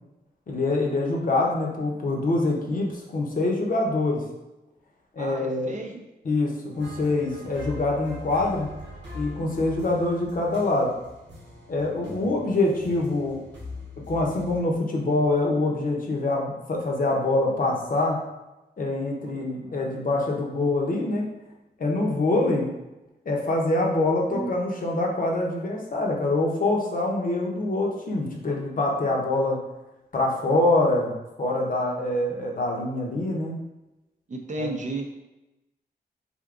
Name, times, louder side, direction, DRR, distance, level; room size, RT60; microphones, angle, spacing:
voice 1, 0.5-4.2 5.1-5.8 6.2-8.7 9.1-10.9 11.7-13.4 14.1-18.2 18.8-21.3 21.8-22.7 23.3-29.6 30.1-31.1 31.4-33.6 34.6-34.7, left 2 dB, 50° left, -1 dB, 0.8 m, -25 dB
voice 2, 5.2-6.0 19.2-20.1 24.3-24.5 34.3-35.1, right 2 dB, 45° right, 3 dB, 0.5 m, -34 dB
sound 1, 6.7-14.6, left 2 dB, 85° right, 0.8 m, -42 dB
3.6 x 2.6 x 2.4 m, 0.99 s
cardioid pair, 50°, 18 cm